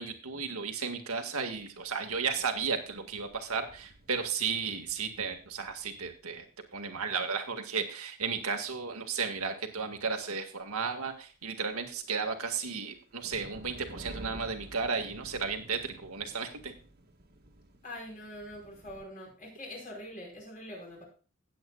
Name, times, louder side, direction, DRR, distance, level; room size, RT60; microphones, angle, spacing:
voice 1, 0.0-6.5 6.7-16.7, right 5 dB, 80° right, 5 dB, 2.0 m, -34 dB
sound 1, 1.5-6.7 11.7-19.1, right 1 dB, 45° right, 1.9 m, -52 dB
voice 2, 17.8-21.0, left 1 dB, 40° left, 0 dB, 5.1 m, -44 dB
17.5 x 8.6 x 2.4 m, 0.37 s
head